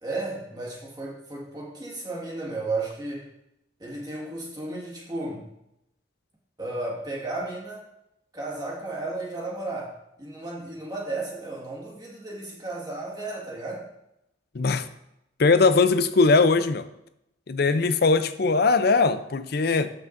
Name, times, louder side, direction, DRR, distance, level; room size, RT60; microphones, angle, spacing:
voice 1, 0.0-3.3 3.8-5.4 6.6-7.9 8.3-13.9, right 2 dB, 20° right, -3 dB, 1.8 m, -34 dB
voice 2, 14.5-14.9 15.4-16.8 17.5-19.9, left 4 dB, 55° left, 12 dB, 0.5 m, -20 dB
13.5 x 6.0 x 2.6 m, 0.83 s
head